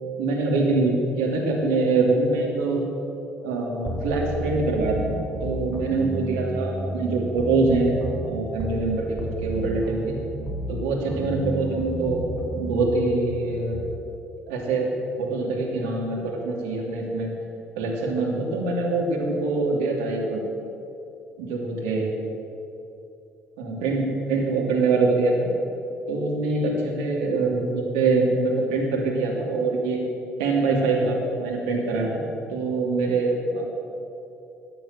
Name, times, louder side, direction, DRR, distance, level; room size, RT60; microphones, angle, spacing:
voice 1, 0.2-2.8 3.4-7.9 8.2-10.2 10.7-12.2 12.5-13.8 14.5-14.9 15.2-17.3 17.8-20.4 21.4-22.1 23.6-25.5 26.1-30.0 30.4-32.2 32.5-33.6, right 3 dB, 70° right, -2 dB, 2.7 m, -24 dB
sound 1, 3.9-8.9 9.2-14.0, right 1 dB, 25° right, 2.7 m, -32 dB
13.5 x 9.2 x 7.6 m, 2.8 s
figure-of-eight pair, 50°, 7 cm